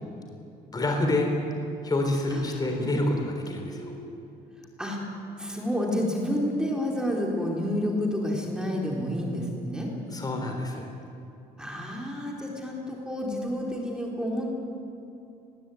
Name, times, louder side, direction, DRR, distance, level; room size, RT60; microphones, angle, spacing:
voice 1, 0.7-1.3 1.8-3.9 10.1-10.9, left 2 dB, 25° left, 3 dB, 3.6 m, -27 dB
voice 2, 2.3-3.2 3.6-4.2 4.8-5.0 5.4-9.9 11.6-14.5, equal, 5° right, -1 dB, 4.1 m, -30 dB
20.5 x 17.0 x 9.4 m, 2.8 s
cardioid pair, 110°, 17 cm